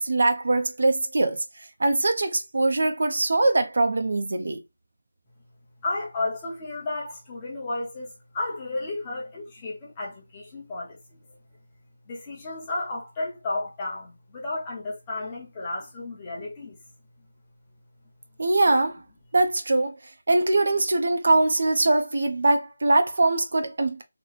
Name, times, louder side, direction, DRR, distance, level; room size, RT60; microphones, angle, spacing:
voice 1, 0.0-1.4 1.8-4.6 18.4-19.0 19.3-19.9 20.3-24.0, right 2 dB, 55° right, 0.6 m, -22 dB
voice 2, 5.8-11.2 12.1-16.8, left 2 dB, 15° left, 0.8 m, -33 dB
3.0 x 2.1 x 3.9 m
figure-of-eight pair, 180°, 0 cm